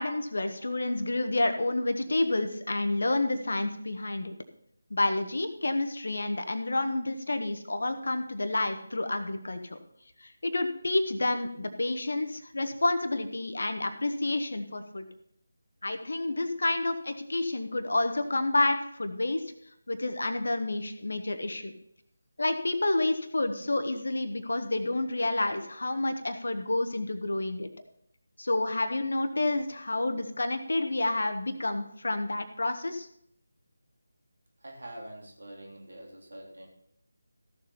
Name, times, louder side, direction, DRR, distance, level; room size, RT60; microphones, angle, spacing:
voice 1, 0.0-4.3 4.9-9.8 10.2-15.1 15.8-19.4 19.9-21.7 22.4-27.7 28.4-33.1, left 2 dB, 60° left, 8 dB, 1.3 m, -29 dB
voice 2, 34.6-36.7, right 1 dB, 65° right, 0 dB, 3.4 m, -45 dB
14.5 x 7.1 x 4.2 m, 0.72 s
figure-of-eight pair, 160°, 0 cm